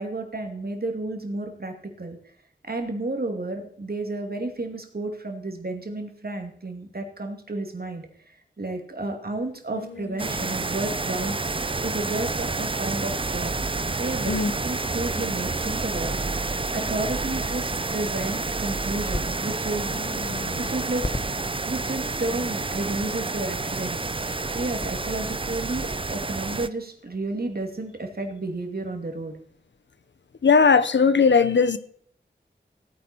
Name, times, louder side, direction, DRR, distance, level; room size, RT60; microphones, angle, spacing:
voice 1, 0.0-2.2 2.6-8.1 8.6-11.4 11.8-13.5 14.0-16.2 16.7-19.9 20.6-21.0 21.7-24.0 24.5-29.4, right 2 dB, 55° right, 2.5 m, -31 dB
sound 1, 9.7-10.9 11.1-11.7 12.1-12.4 12.9-13.5 14.0-14.7 15.1-16.9 17.4-17.6 18.1-18.6 19.1-19.6 19.9-21.5 22.0-22.6, left 3 dB, 90° left, 2.6 m, -45 dB
sound 2, 10.2-26.7, right 3 dB, 30° right, 0.5 m, -29 dB
sound 3, 19.1-25.8, left 1 dB, 20° left, 1.1 m, -36 dB
voice 2, 30.4-31.8, left 5 dB, 70° left, 0.7 m, -18 dB
16.0 x 9.7 x 4.4 m
wide cardioid pair, 70°, 19 cm